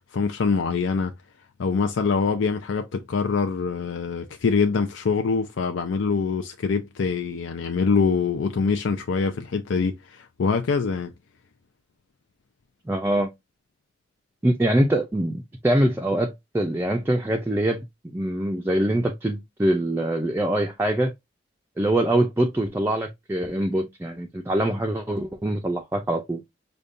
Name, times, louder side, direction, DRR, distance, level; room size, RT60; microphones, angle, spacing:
voice 1, 0.1-1.1 1.6-11.1, left 5 dB, 90° left, 0.5 m, -24 dB
voice 2, 12.9-13.3 14.4-21.1 21.8-26.4, right 1 dB, 10° right, 0.4 m, -24 dB
5.1 x 2.3 x 2.5 m
head